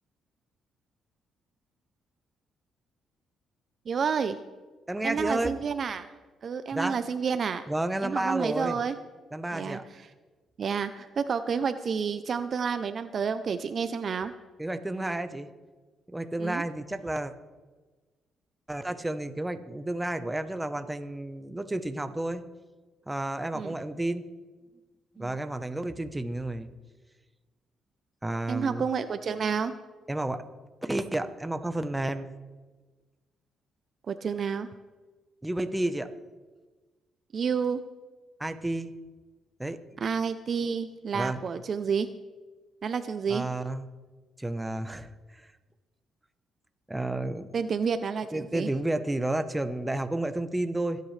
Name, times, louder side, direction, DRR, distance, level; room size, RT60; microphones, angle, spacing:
voice 1, 3.9-4.4 5.0-6.1 6.4-7.6 8.0-9.0 9.5-9.8 10.6-14.3 16.4-16.6 23.5-23.7 25.2-25.4 28.5-29.8 34.1-34.7 37.3-37.8 40.0-42.1 42.8-43.5 47.5-48.7, right 6 dB, 50° right, 10 dB, 0.6 m, -30 dB
voice 2, 4.9-5.5 6.7-7.0 7.7-8.8 9.3-9.8 14.6-15.5 16.1-17.3 18.7-22.4 23.1-24.3 25.2-26.7 28.2-28.8 30.1-30.4 30.8-32.3 35.4-36.1 38.4-38.9 39.6-39.8 41.1-41.4 43.3-43.9 44.4-45.5 46.9-47.5 48.3-51.0, right 1 dB, 10° right, 8 dB, 1.0 m, -31 dB
26.0 x 9.3 x 3.3 m, 1.3 s
cardioid pair, 90°, 0 cm